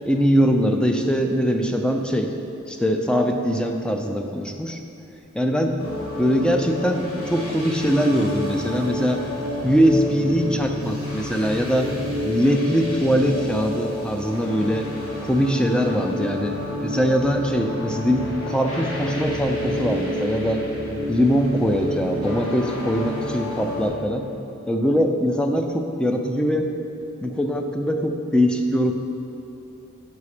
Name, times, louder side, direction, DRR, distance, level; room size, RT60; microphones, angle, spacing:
voice 1, 0.0-2.3 2.7-4.8 5.3-5.8 6.2-9.2 9.6-11.9 12.2-14.9 15.2-16.6 16.8-20.6 21.1-24.3 24.7-26.7 27.2-28.9, equal, 5° left, 4 dB, 0.4 m, -22 dB
sound 1, 5.8-23.9, left 1 dB, 85° left, 1.7 m, -30 dB
7.0 x 5.1 x 4.9 m, 2.7 s
head